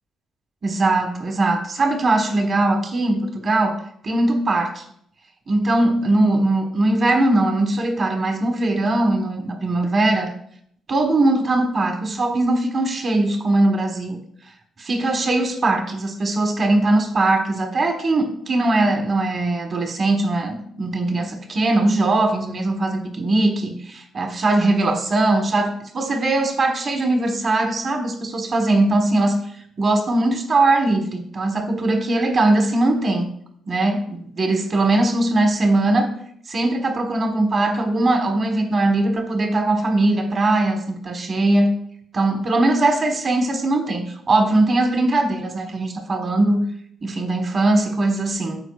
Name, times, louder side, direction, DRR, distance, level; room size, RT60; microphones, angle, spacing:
voice 1, 0.6-4.8 5.5-10.3 10.9-14.2 14.8-29.4 29.8-33.3 33.7-36.1 36.5-41.7 42.1-46.6 47.0-48.6, right 2 dB, 45° right, 5 dB, 1.2 m, -20 dB
13.5 x 4.5 x 2.4 m, 0.67 s
cardioid pair, 90°, 0 cm